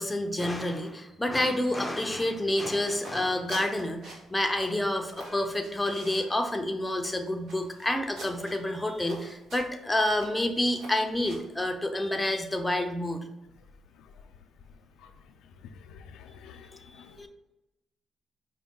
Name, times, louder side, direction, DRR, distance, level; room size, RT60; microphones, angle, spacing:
voice 1, 0.0-13.2 17.2-17.3, left 1 dB, 10° left, 5 dB, 0.5 m, -28 dB
sound 1, 2.2-11.6, right 1 dB, 70° right, 1.2 m, -48 dB
voice 2, 15.6-17.3, left 6 dB, 90° left, 7 dB, 0.3 m, -49 dB
4.9 x 2.2 x 3.6 m, 0.97 s
cardioid pair, 90°, 0 cm